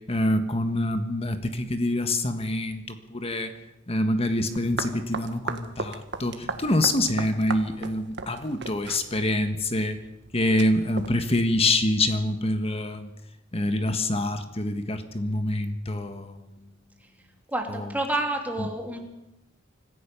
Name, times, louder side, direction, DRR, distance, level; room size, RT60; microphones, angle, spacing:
voice 1, 0.1-3.5 3.9-10.0 10.3-13.1 13.5-16.4 17.7-17.9 18.6-18.7, left 1 dB, 30° left, 8 dB, 1.4 m, -26 dB
sound 1, 4.5-11.1, right 4 dB, 65° right, 1.6 m, -37 dB
voice 2, 17.5-19.0, right 1 dB, 10° right, 2 dB, 3.1 m, -29 dB
26.0 x 15.0 x 7.0 m, 0.91 s
head